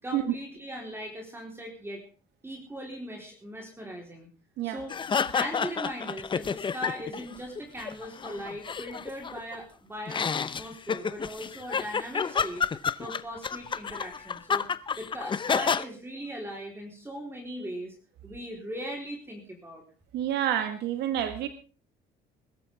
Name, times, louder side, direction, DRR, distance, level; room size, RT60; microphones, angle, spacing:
voice 1, 0.0-2.0 2.4-4.3 4.6-5.0 5.3-12.7 13.0-14.7 15.0-17.9 18.2-19.8, equal, 15° right, 1 dB, 4.0 m, -39 dB
sound 1, 4.9-7.3 7.6-9.5 10.1-15.8, left 6 dB, 30° left, 0.8 m, -30 dB
voice 2, 20.1-21.5, right 11 dB, 80° right, 8 dB, 1.7 m, -28 dB
21.5 x 13.0 x 3.6 m, 0.38 s
cardioid pair, 110°, 17 cm